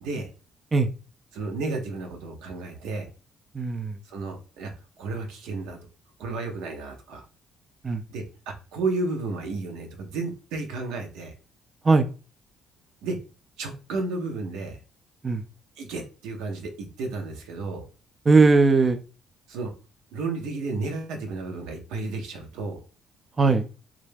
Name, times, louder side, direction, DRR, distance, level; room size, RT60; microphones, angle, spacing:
voice 1, 1.3-3.1 4.0-4.7 5.0-5.8 6.2-7.2 8.1-11.3 13.0-13.2 13.6-14.8 15.8-17.8 19.5-19.7 20.1-22.8, right 3 dB, 85° right, 3 dB, 0.6 m, -32 dB
voice 2, 3.6-3.9 7.8-8.0 11.9-12.1 15.2-15.4 18.3-19.0 23.4-23.7, right 3 dB, 30° right, 7 dB, 0.3 m, -19 dB
2.3 x 2.0 x 3.2 m, 0.34 s
supercardioid pair, 75°, 0 cm